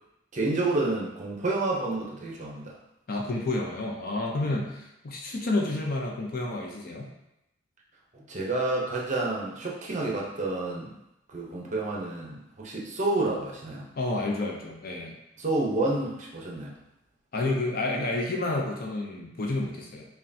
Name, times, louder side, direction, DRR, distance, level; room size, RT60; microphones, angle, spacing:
voice 1, 0.3-2.8 4.4-4.6 8.1-11.0 11.3-13.9 15.4-16.7, right 2 dB, 40° right, -3 dB, 0.7 m, -29 dB
voice 2, 3.1-7.1 14.0-15.1 17.3-20.0, left 2 dB, 50° left, 0 dB, 0.6 m, -30 dB
5.5 x 2.3 x 2.6 m, 0.88 s
head